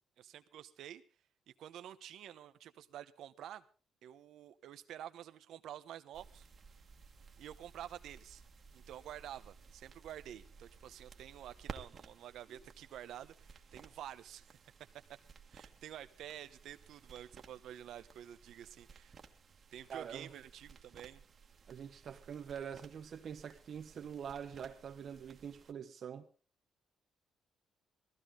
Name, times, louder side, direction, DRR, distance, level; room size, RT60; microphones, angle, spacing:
voice 1, 0.2-1.0 1.6-3.6 4.0-6.5 7.4-8.4 8.7-14.6 15.5-19.2 19.7-21.2, right 11 dB, 75° right, 1.0 m, -49 dB
sound 1, 6.1-25.7, right 5 dB, 40° right, 1.7 m, -57 dB
voice 2, 19.9-20.3 21.7-26.3, right 8 dB, 55° right, 1.1 m, -45 dB
19.0 x 15.0 x 3.8 m
cardioid pair, 105°, 0 cm